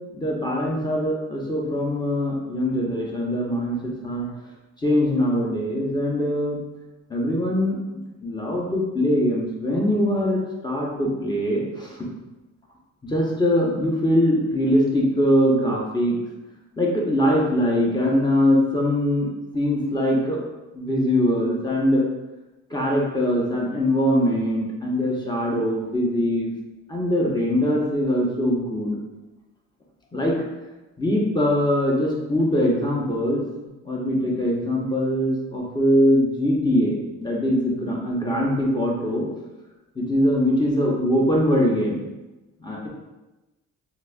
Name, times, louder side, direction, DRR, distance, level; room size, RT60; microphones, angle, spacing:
voice 1, 0.1-4.3 4.8-6.6 7.1-7.8 8.2-12.1 13.0-16.1 16.8-20.4 20.7-22.0 22.7-26.5 26.9-29.0 30.1-30.4 31.0-33.4 33.8-39.3 39.9-42.0 42.6-42.9, equal, 15° left, -3 dB, 0.8 m, -22 dB
4.0 x 2.5 x 2.3 m, 1.1 s
cardioid pair, 90°, 30 cm